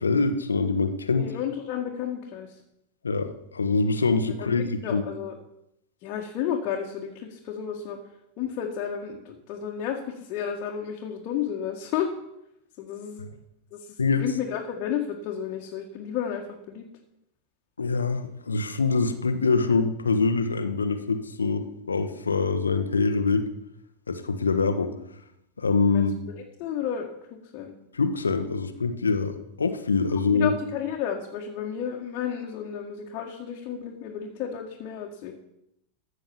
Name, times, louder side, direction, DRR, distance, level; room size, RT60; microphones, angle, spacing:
voice 1, 0.0-1.3 3.0-5.0 14.0-14.2 17.8-23.5 24.1-24.9 25.6-26.1 27.9-30.5, left 4 dB, 75° left, 9 dB, 1.0 m, -24 dB
voice 2, 1.2-2.5 4.4-4.5 4.8-5.4 6.0-8.0 8.4-10.0 10.3-12.1 12.8-13.2 13.7-13.8 14.2-16.8 25.9-26.0 26.6-27.7 30.3-35.3, left 8 dB, 40° left, -1 dB, 1.6 m, -32 dB
14.5 x 6.4 x 7.1 m, 0.82 s
figure-of-eight pair, 90°, 0 cm